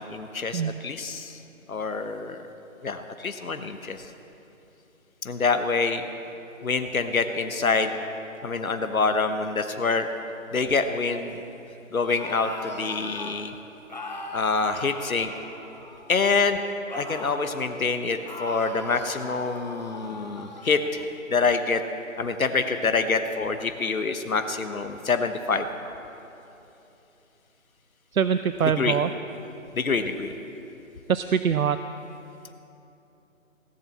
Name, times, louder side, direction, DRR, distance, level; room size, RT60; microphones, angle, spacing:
voice 1, 0.0-1.4 1.7-2.4 2.8-4.1 5.2-6.1 6.6-7.9 8.4-10.1 10.5-11.4 11.9-13.5 14.3-15.3 16.1-16.6 16.9-21.8 22.2-25.6 28.8-29.0 29.7-30.3, left 4 dB, 85° left, 8 dB, 1.1 m, -26 dB
sound 1, 12.0-13.4 13.9-16.2 16.9-17.6 18.2-20.7, left 2 dB, 30° left, 0.9 m, -39 dB
voice 2, 28.1-29.1 31.1-31.8, right 7 dB, 85° right, 11 dB, 0.6 m, -23 dB
17.0 x 7.6 x 7.4 m, 2.9 s
figure-of-eight pair, 170°, 41 cm